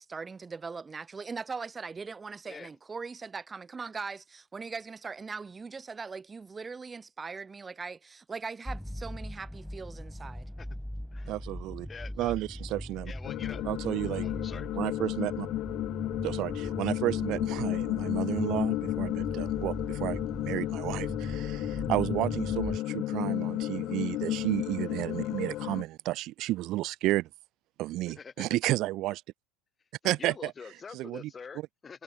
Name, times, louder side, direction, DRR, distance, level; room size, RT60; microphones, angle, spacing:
voice 1, 0.0-10.5, right 4 dB, 15° right, 0.8 m, -40 dB
sound 1, 8.7-22.8, equal, ahead, 0.4 m, -40 dB
voice 2, 11.3-11.9 12.2-13.1 13.6-14.3 14.7-15.5 16.2-27.3 27.8-29.2 30.0-30.5 30.9-31.3, right 17 dB, 50° right, 0.7 m, -32 dB
voice 3, 11.9-12.3 13.1-13.6 14.2-14.7 28.1-28.5 30.0-32.0, left 5 dB, 20° left, 0.9 m, -45 dB
sound 2, 13.2-25.8, left 15 dB, 45° left, 0.7 m, -33 dB
sound 3, 16.2-22.5, right 23 dB, 75° right, 3.7 m, -55 dB
supercardioid pair, 130°, 0 cm